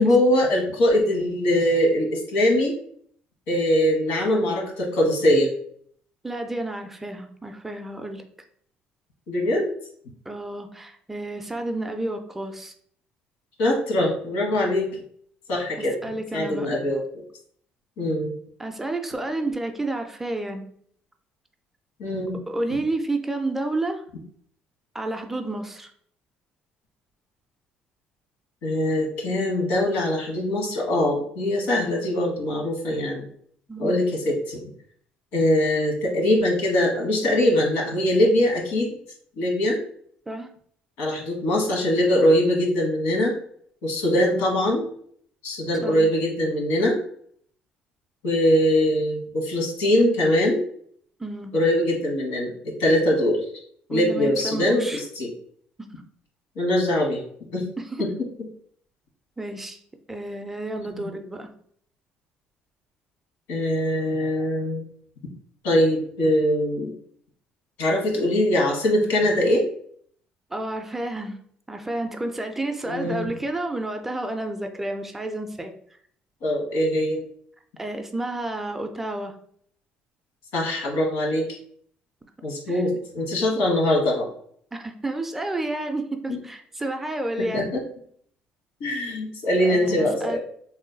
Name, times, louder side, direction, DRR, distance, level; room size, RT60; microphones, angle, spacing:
voice 1, 0.0-2.7 3.5-5.5 9.3-9.7 13.6-14.9 15.5-15.9 16.3-17.0 18.0-18.3 22.0-22.4 28.6-33.3 33.8-34.6 35.3-38.9 39.4-39.8 41.0-43.3 43.8-44.8 45.4-47.0 48.2-50.6 51.5-52.5 52.8-53.4 53.9-55.3 56.6-57.2 57.5-57.6 58.0-58.1 60.8-61.1 63.5-64.8 65.6-66.9 67.8-69.6 72.8-73.3 76.4-77.2 80.5-81.6 82.4-84.3 86.3-86.4 87.4-87.8 88.8-90.4, left 1 dB, 90° left, 0 dB, 1.2 m, -22 dB
voice 2, 6.2-8.2 10.3-12.7 15.8-16.7 18.6-20.6 22.5-24.0 24.9-25.9 33.7-33.9 40.3-40.5 45.8-46.0 51.2-51.6 53.9-55.0 57.8-58.0 59.4-59.8 60.1-61.5 70.5-71.4 71.7-75.7 77.8-79.4 82.7-82.8 84.7-87.7 89.6-90.4, right 2 dB, 10° right, 5 dB, 0.3 m, -30 dB
3.0 x 2.2 x 3.8 m, 0.62 s
cardioid pair, 160°, 3 cm